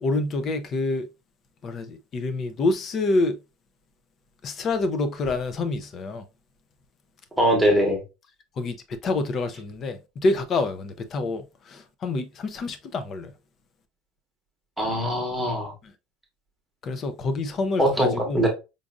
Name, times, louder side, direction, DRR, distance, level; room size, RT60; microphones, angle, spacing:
voice 1, 0.0-1.1 1.6-3.4 4.4-6.2 8.6-13.3 16.8-18.4, left 2 dB, 25° left, 0.5 m, -27 dB
voice 2, 7.4-8.0 14.8-15.7 17.8-18.5, equal, 5° right, 1.1 m, -22 dB
5.1 x 2.5 x 2.3 m
cardioid pair, 175°, 0 cm